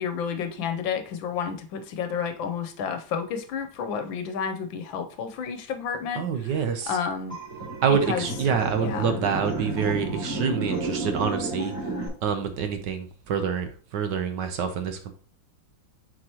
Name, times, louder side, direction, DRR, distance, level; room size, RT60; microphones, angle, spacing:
voice 1, 0.0-6.5 6.9-7.4 7.9-8.3 8.8-9.1, left 6 dB, 75° left, 8 dB, 1.5 m, -31 dB
voice 2, 6.1-6.9 7.8-11.7 12.2-15.1, right 7 dB, 65° right, 7 dB, 1.4 m, -27 dB
sound 1, 7.3-12.1, right 2 dB, 35° right, 3.4 m, -31 dB
7.7 x 4.9 x 2.9 m, 0.40 s
omnidirectional pair, 2.1 m